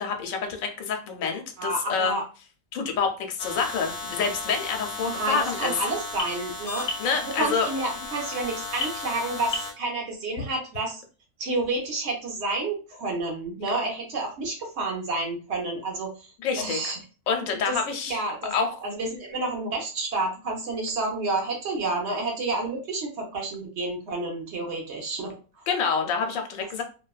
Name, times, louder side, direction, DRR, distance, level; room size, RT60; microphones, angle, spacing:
voice 1, 0.0-2.1 2.7-5.7 7.0-7.7 16.4-16.9 17.3-18.2 18.5-18.7 25.7-26.8, left 5 dB, 85° left, 5 dB, 1.0 m, -27 dB
voice 2, 1.6-2.2 5.0-6.9 7.3-11.0 11.4-17.0 17.5-17.8 18.1-18.5 18.8-25.6, right 2 dB, 60° right, 0 dB, 1.1 m, -30 dB
sound 1, 3.4-9.7, left 3 dB, 55° left, 0.8 m, -34 dB
2.7 x 2.2 x 2.3 m, 0.35 s
omnidirectional pair, 1.4 m